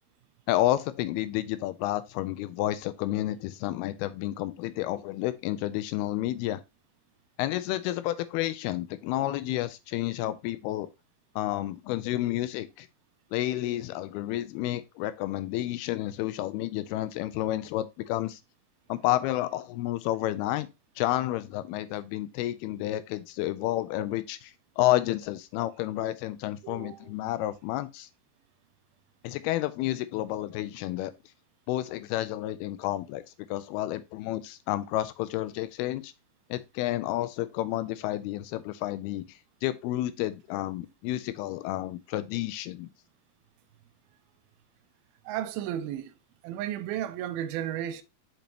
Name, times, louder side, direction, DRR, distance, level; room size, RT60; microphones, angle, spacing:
voice 1, 0.5-6.6 7.4-10.9 11.4-12.9 13.3-18.4 18.9-20.7 21.0-28.1 29.2-31.1 31.7-33.2 33.5-36.1 36.5-39.2 39.6-42.9, left 15 dB, 85° left, 2.6 m, -30 dB
voice 2, 26.6-27.1 45.3-46.1 46.4-48.0, right 11 dB, 80° right, 2.4 m, -33 dB
6.8 x 5.3 x 2.9 m
omnidirectional pair, 4.4 m